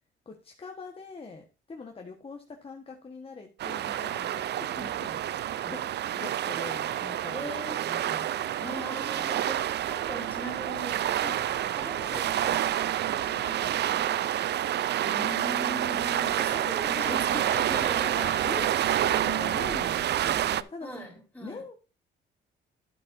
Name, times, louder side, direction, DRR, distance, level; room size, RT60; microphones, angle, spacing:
voice 1, 0.2-7.5 7.8-8.4 11.2-11.4 15.0-17.7 18.0-20.9 21.4-21.7, left 3 dB, 30° left, 1.3 m, -42 dB
sound 1, 3.6-20.6, right 11 dB, 60° right, 0.5 m, -28 dB
voice 2, 7.3-7.8 8.6-14.2 16.4-18.7 20.8-21.6, equal, 10° left, 4.2 m, -41 dB
10.5 x 8.3 x 2.6 m
cardioid pair, 90°, 20 cm